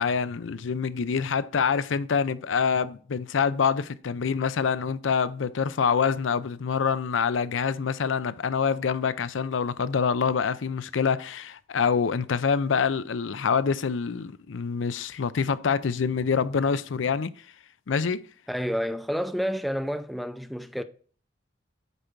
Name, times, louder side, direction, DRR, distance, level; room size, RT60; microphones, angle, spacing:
voice 1, 0.0-17.3 17.9-18.2, left 6 dB, 85° left, 0.5 m, -26 dB
voice 2, 18.5-20.8, equal, ahead, 0.4 m, -29 dB
8.3 x 4.5 x 5.2 m
head